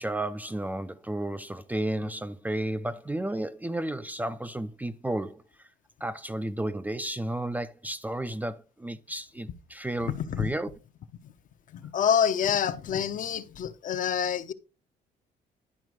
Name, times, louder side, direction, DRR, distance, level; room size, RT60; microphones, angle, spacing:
voice 1, 0.0-5.4 6.0-10.7, right 1 dB, 10° right, 0.5 m, -32 dB
voice 2, 10.0-10.5 11.2-11.3 11.7-14.5, left 8 dB, 50° left, 0.9 m, -27 dB
11.0 x 5.0 x 4.7 m
cardioid pair, 110°, 17 cm